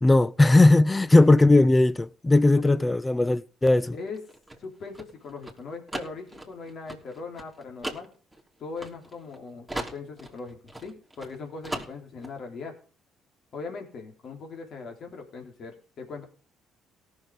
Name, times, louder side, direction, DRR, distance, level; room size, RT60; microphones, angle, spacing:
voice 1, 0.0-4.0, left 2 dB, 20° left, 0.5 m, -18 dB
sound 1, 4.1-9.4 9.7-11.4 11.6-12.3, right 1 dB, 5° right, 3.3 m, -38 dB
voice 2, 4.6-8.1 8.6-12.8 13.5-16.2, left 4 dB, 55° left, 3.5 m, -39 dB
18.0 x 6.6 x 5.3 m
hypercardioid pair, 55°, 0 cm